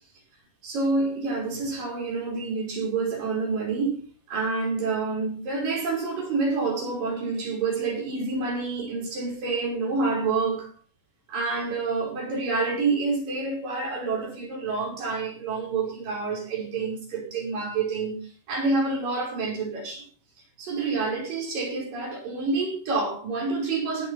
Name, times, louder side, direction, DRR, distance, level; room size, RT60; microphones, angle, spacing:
voice 1, 0.6-4.0 4.3-10.7 11.3-20.1 20.6-24.1, right 3 dB, 75° right, 6.8 m, -28 dB
16.5 x 8.5 x 5.7 m
omnidirectional pair, 3.9 m